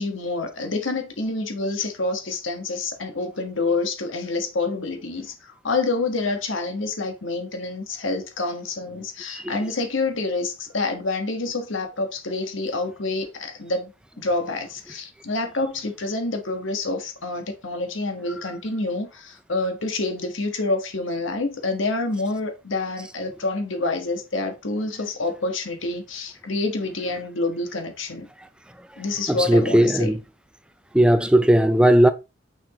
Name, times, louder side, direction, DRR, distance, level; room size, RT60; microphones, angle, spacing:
voice 1, 0.0-13.9 14.2-28.3 29.0-30.1, left 3 dB, 75° left, 1.5 m, -27 dB
voice 2, 29.3-30.2 30.9-32.1, right 1 dB, 5° right, 0.5 m, -17 dB
6.2 x 6.0 x 3.0 m
head